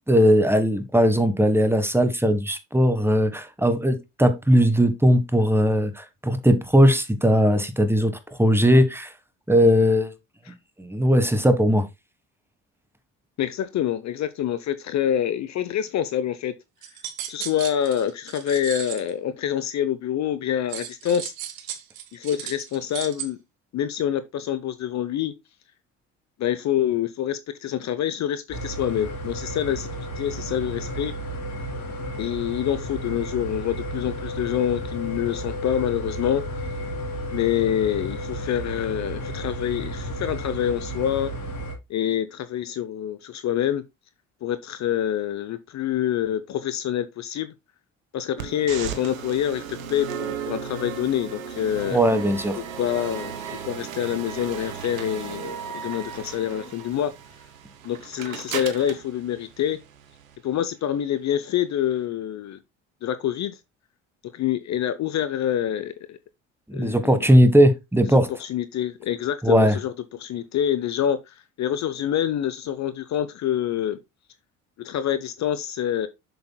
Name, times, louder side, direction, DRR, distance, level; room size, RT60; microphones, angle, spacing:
voice 1, 0.1-9.1 9.5-10.1 10.8-11.8 51.9-52.6 66.7-68.3 69.4-69.8, equal, 5° right, 1.4 m, -19 dB
voice 2, 13.4-16.5 17.3-21.3 22.1-23.4 23.7-25.3 26.4-29.9 30.2-31.1 32.2-36.4 37.3-41.3 41.9-43.8 44.4-47.5 48.1-49.6 49.9-52.0 52.6-53.3 53.6-57.1 57.8-59.8 60.4-62.6 63.0-63.6 64.3-66.2 66.7-67.2 68.3-74.0 74.8-76.1, left 10 dB, 45° left, 0.8 m, -26 dB
sound 1, 16.8-19.1 20.7-23.2, right 11 dB, 60° right, 1.4 m, -36 dB
sound 2, 28.5-41.7, equal, 60° left, 3.8 m, -33 dB
sound 3, 48.4-60.4, right 7 dB, 90° right, 1.2 m, -36 dB
7.8 x 6.9 x 2.2 m
hypercardioid pair, 65°, 39 cm